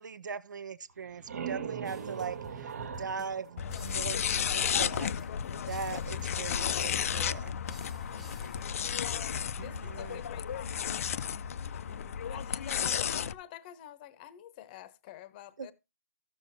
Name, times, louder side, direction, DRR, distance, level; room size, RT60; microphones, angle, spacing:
voice 1, 0.0-5.1 5.5-7.5 9.6-10.2 12.3-12.4 12.7-13.3 15.6-15.7, right 6 dB, 75° right, 0.7 m, -40 dB
sound 1, 0.9-4.6, right 7 dB, 50° right, 1.1 m, -40 dB
sound 2, 1.8-8.7, right 1 dB, ahead, 0.6 m, -54 dB
sound 3, 3.6-13.3, left 8 dB, 50° left, 0.5 m, -33 dB
voice 2, 4.7-5.5 7.9-15.7, left 11 dB, 30° left, 0.9 m, -49 dB
14.0 x 6.9 x 2.7 m
hypercardioid pair, 155°, 10 cm